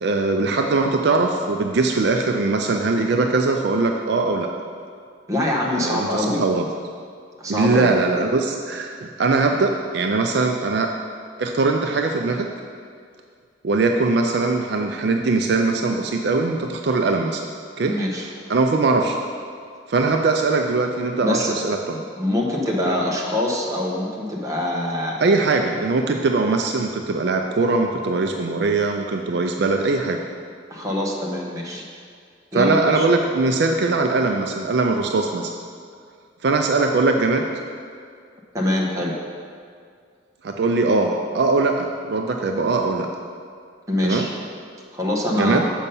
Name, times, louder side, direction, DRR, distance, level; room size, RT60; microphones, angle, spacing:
voice 1, 0.0-4.5 5.7-6.7 7.5-10.9 11.4-12.5 13.6-17.4 17.8-18.0 18.5-19.2 19.9-22.0 22.9-23.0 25.2-30.2 32.5-35.5 36.4-37.4 40.4-43.1 44.0-44.3 45.3-45.7, right 3 dB, 60° right, 3 dB, 0.4 m, -21 dB
voice 2, 5.3-6.4 7.4-7.9 17.9-18.3 21.2-21.5 22.2-25.2 30.7-31.9 32.5-33.1 38.5-39.1 43.9-44.3 44.9-45.6, left 1 dB, 15° right, -3 dB, 1.0 m, -24 dB
7.1 x 5.5 x 5.4 m, 2.2 s
head